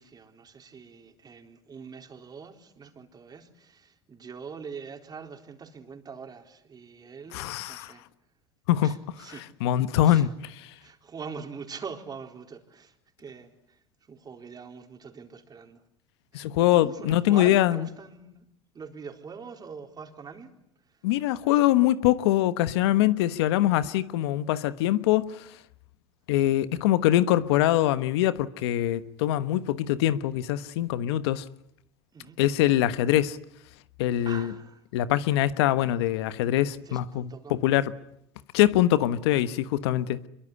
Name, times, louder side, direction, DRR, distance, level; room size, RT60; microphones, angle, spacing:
voice 1, 0.0-8.0 8.8-9.5 10.0-10.3 10.8-13.8 14.1-15.8 16.3-18.5 18.7-20.5 32.1-32.4 34.2-34.8 36.9-37.6, right 5 dB, 30° right, 4.1 m, -43 dB
voice 2, 7.3-7.9 8.7-8.9 9.4-10.7 16.3-17.9 21.0-25.5 26.3-31.4 32.4-33.4 34.0-34.5 34.9-37.9 38.5-40.3, left 13 dB, 80° left, 1.2 m, -23 dB
25.0 x 22.5 x 9.9 m
hypercardioid pair, 90°, 13 cm